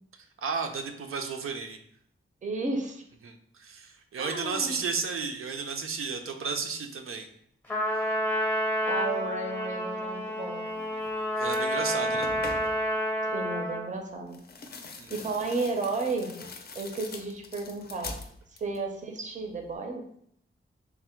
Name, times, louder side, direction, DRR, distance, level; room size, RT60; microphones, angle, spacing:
voice 1, 0.4-1.8 3.2-7.3 7.9-8.0 11.4-12.3 15.0-15.1, right 5 dB, 85° right, 4 dB, 0.5 m, -33 dB
voice 2, 2.4-3.0 4.2-4.8 8.0-8.2 8.9-11.0 13.2-14.4 15.1-16.5 16.8-18.2 18.6-20.0, right 3 dB, 35° right, 3 dB, 0.5 m, -33 dB
Trumpet, 7.7-13.9, equal, 10° left, 0.6 m, -29 dB
sound 1, 11.0-11.1 11.4-12.9 14.3-18.9 19.2-19.8, left 3 dB, 50° left, 0.4 m, -43 dB
3.5 x 2.1 x 4.3 m, 0.68 s
wide cardioid pair, 145°, 21 cm